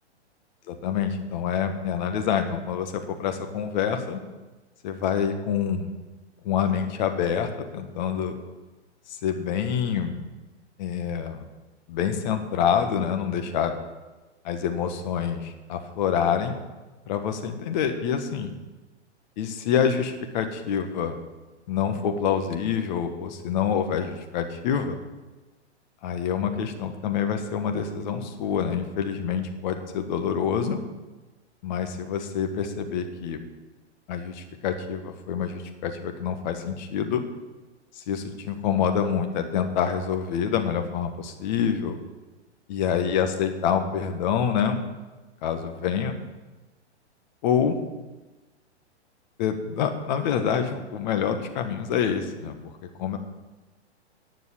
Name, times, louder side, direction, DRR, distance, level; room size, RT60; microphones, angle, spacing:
voice 1, 0.7-4.2 4.8-5.9 6.4-8.3 9.2-10.2 10.8-11.4 11.9-13.7 14.4-16.6 17.1-18.5 19.4-21.1 21.7-25.0 26.0-30.8 31.6-33.4 34.1-37.2 38.0-42.0 42.7-44.8 45.4-46.1 47.4-47.8 49.4-52.6 53.0-53.2, left 7 dB, 40° left, 6 dB, 1.4 m, -26 dB
9.9 x 7.0 x 8.4 m, 1.2 s
hypercardioid pair, 155°, 35 cm